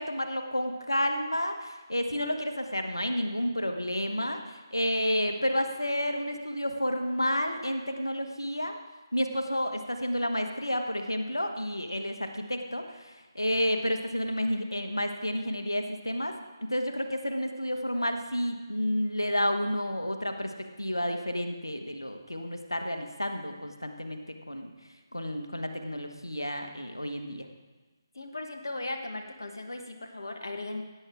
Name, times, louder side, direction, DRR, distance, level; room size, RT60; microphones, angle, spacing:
voice 1, 0.0-8.8 9.1-16.3 16.7-24.2 24.5-24.7 25.1-27.5, equal, 85° left, 5 dB, 1.3 m, -30 dB
voice 2, 28.1-30.8, left 2 dB, 65° left, 4 dB, 1.2 m, -37 dB
17.0 x 8.4 x 3.6 m, 1.2 s
figure-of-eight pair, 150°, 2 cm